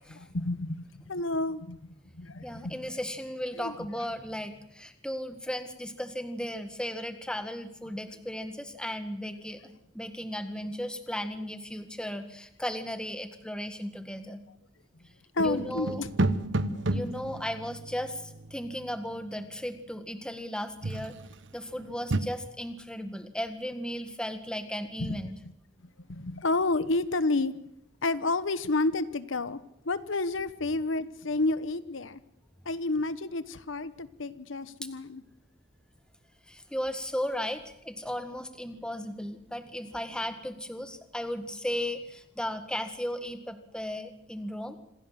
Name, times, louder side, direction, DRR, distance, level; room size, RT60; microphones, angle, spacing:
voice 1, 0.2-3.0 3.5-3.8 15.3-16.1 16.5-17.1 25.0-25.5 26.0-27.5 28.0-29.6 29.8-32.2 32.6-35.2, left 2 dB, 90° left, 14 dB, 1.1 m, -30 dB
voice 2, 2.3-14.4 15.4-16.0 16.9-21.1 21.5-25.4 36.5-44.8, equal, 5° left, 8 dB, 1.7 m, -36 dB
sound 1, 15.4-19.2 20.8-21.4 21.8-22.2, right 2 dB, 70° right, 1.1 m, -32 dB
27.0 x 16.0 x 7.5 m, 0.77 s
head